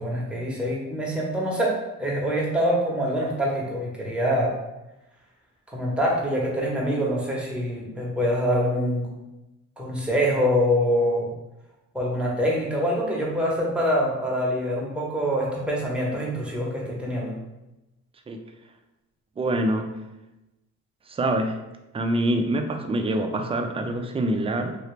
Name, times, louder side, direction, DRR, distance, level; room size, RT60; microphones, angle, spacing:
voice 1, 0.0-4.5 5.7-9.1 9.8-11.3 11.9-17.3, equal, 5° right, -4 dB, 1.1 m, -25 dB
voice 2, 19.4-19.9 21.1-21.6 21.9-24.8, right 1 dB, 20° right, 4 dB, 0.4 m, -25 dB
2.9 x 2.8 x 3.2 m, 0.98 s
cardioid pair, 90°, 30 cm